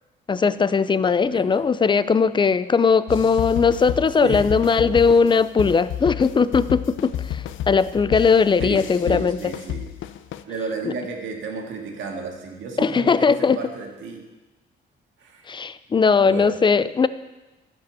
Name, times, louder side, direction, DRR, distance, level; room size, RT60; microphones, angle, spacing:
voice 1, 0.3-9.4 10.8-10.9 12.8-13.6 15.5-17.1, left 5 dB, 25° left, 16 dB, 0.4 m, -19 dB
sound 1, 3.1-10.4, left 10 dB, 75° left, 0.6 m, -31 dB
voice 2, 8.6-9.9 10.5-14.2 15.2-15.5 16.2-16.6, right 4 dB, 75° right, 2 dB, 2.1 m, -32 dB
11.5 x 5.3 x 8.3 m, 1.1 s
cardioid pair, 90°, 20 cm